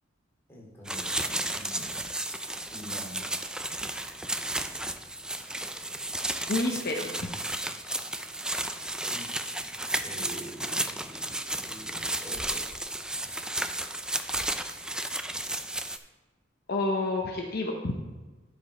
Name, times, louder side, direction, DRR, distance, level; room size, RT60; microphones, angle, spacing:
voice 1, 0.5-1.9 2.7-3.2 9.0-9.6 10.0-12.7, equal, 15° left, -4 dB, 2.6 m, -46 dB
sound 1, 0.8-16.0, right 1 dB, 5° right, 0.3 m, -33 dB
voice 2, 6.5-7.3 16.7-18.0, left 2 dB, 55° left, 1 dB, 0.8 m, -29 dB
11.5 x 5.2 x 4.2 m, 1.2 s
head